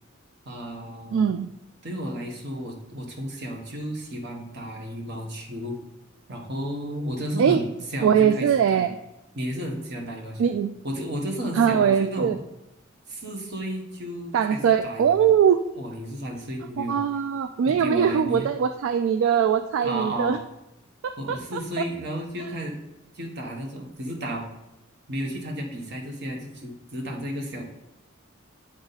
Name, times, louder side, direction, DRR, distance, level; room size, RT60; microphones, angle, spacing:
voice 1, 0.4-1.3 1.8-5.8 6.3-8.9 9.3-10.5 10.8-12.4 13.1-15.3 15.8-17.0 17.6-18.5 19.8-20.4 21.2-22.8 23.1-24.5 25.1-27.6, equal, 60° right, 2 dB, 1.2 m, -33 dB
voice 2, 1.1-1.5 7.4-7.6 8.0-8.9 10.4-10.7 11.5-12.4 14.3-15.6 16.8-20.4 21.0-21.6, right 8 dB, 75° right, 9 dB, 0.3 m, -21 dB
8.6 x 3.7 x 4.0 m, 0.92 s
head